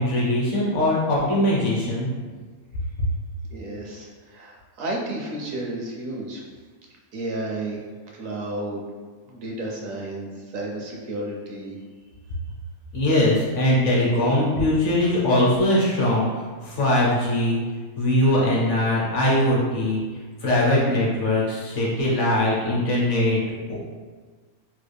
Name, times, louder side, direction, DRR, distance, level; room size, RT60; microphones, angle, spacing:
voice 1, 0.0-2.1 12.9-16.3 16.6-17.6 18.0-20.0 20.4-23.4 23.7-23.8, left 1 dB, 60° left, -5 dB, 1.0 m, -21 dB
voice 2, 3.5-6.4 7.1-7.8 8.2-8.8 9.3-11.8, right 1 dB, 70° right, -2 dB, 0.9 m, -32 dB
3.1 x 2.3 x 3.3 m, 1.4 s
omnidirectional pair, 1.5 m